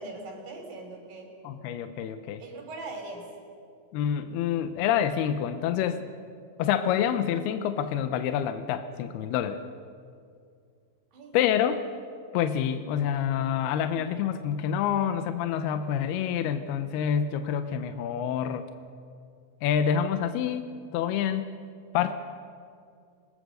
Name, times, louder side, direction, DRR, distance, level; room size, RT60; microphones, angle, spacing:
voice 1, 0.0-1.3 2.4-3.3 11.1-11.5, right 2 dB, 90° right, 3 dB, 5.4 m, -40 dB
voice 2, 1.4-2.4 3.9-6.1 6.6-9.6 11.3-11.8 12.3-18.7 19.6-21.5 21.9-22.1, left 9 dB, 85° left, 9 dB, 2.8 m, -27 dB
27.0 x 21.0 x 6.5 m, 2.3 s
omnidirectional pair, 4.5 m